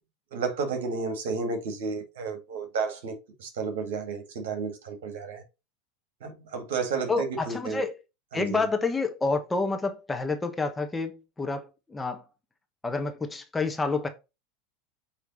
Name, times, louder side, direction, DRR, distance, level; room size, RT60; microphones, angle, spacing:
voice 1, 0.3-5.4 6.2-7.8 8.3-8.6, right 5 dB, 65° right, 2.1 m, -32 dB
voice 2, 7.1-7.9 8.3-12.2 12.8-14.1, left 3 dB, 15° left, 1.1 m, -29 dB
8.3 x 3.2 x 4.0 m
hypercardioid pair, 85°, 0 cm